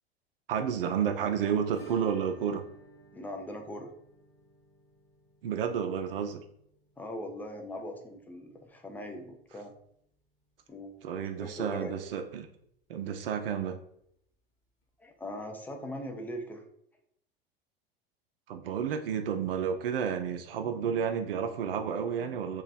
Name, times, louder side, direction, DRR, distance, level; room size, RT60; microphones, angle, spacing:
voice 1, 0.5-2.6 5.4-6.4 11.0-12.5 12.9-13.8 18.5-22.6, right 7 dB, 65° right, 6 dB, 0.5 m, -31 dB
Acoustic guitar / Strum, 1.7-10.3 10.6-10.7 11.0-11.1 11.4-11.5 13.6-13.7 14.8-14.9, right 2 dB, 25° left, 1.1 m, -56 dB
voice 2, 3.1-3.9 7.0-9.7 10.7-12.0 15.0-16.6, equal, 5° left, 4 dB, 0.4 m, -40 dB
3.0 x 2.4 x 4.0 m, 0.72 s
figure-of-eight pair, 80°, 31 cm